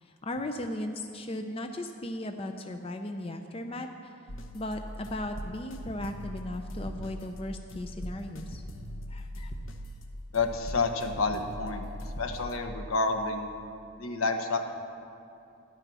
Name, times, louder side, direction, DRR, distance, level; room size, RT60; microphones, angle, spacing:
voice 1, 0.0-4.1 4.5-8.6 9.1-9.5, left 1 dB, 25° left, 5 dB, 0.5 m, -37 dB
sound 1, 4.3-12.6, equal, 65° left, 0.9 m, -41 dB
voice 2, 10.3-11.9 12.2-13.5 14.0-14.7, left 3 dB, 80° left, 6 dB, 1.1 m, -29 dB
12.5 x 10.5 x 6.2 m, 2.6 s
head